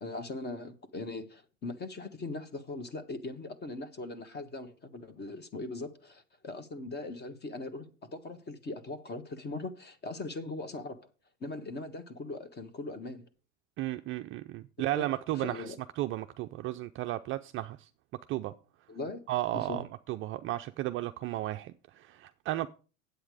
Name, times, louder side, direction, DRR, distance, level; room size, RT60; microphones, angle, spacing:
voice 1, 0.0-11.1 11.4-13.2 14.9-15.1 15.3-15.8 18.9-19.8, left 2 dB, 25° left, 1.3 m, -40 dB
voice 2, 13.8-17.9 18.3-18.5 19.3-22.7, right 15 dB, 35° right, 0.4 m, -34 dB
8.8 x 8.1 x 4.8 m
supercardioid pair, 115°, 40 cm